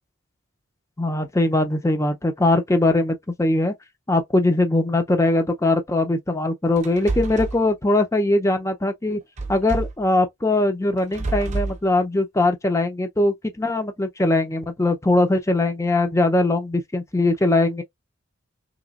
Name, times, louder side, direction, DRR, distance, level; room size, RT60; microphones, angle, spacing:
voice 1, 1.0-3.7 4.1-9.2 9.5-17.8, left 2 dB, 15° left, 0.5 m, -21 dB
sound 1, 6.8-7.6 9.4-10.0 11.0-11.8, right 3 dB, 35° right, 0.6 m, -28 dB
3.2 x 2.9 x 2.4 m
head